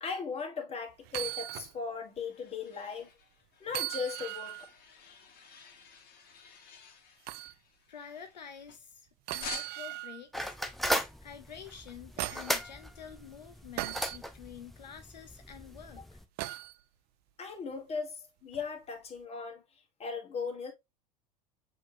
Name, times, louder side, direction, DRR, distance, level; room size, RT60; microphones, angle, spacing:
voice 1, 0.0-3.1 3.6-4.6 16.0-16.1 17.4-19.6 20.0-20.7, left 5 dB, 30° left, 1.5 m, -38 dB
sound 1, 1.1-1.7 2.2-2.3 3.7-4.7 7.3-7.5 9.3-10.2 11.7-12.6 13.8-14.2 16.4-16.8 18.5-18.7, right 17 dB, 50° right, 0.4 m, -38 dB
sound 2, 1.7-9.0 9.4-10.0, left 6 dB, 50° left, 1.2 m, -50 dB
voice 2, 7.9-10.9 11.2-16.2, left 7 dB, 90° left, 0.6 m, -48 dB
sound 3, 10.3-16.2, equal, ahead, 0.6 m, -37 dB
6.5 x 2.9 x 2.7 m
hypercardioid pair, 80°, 21 cm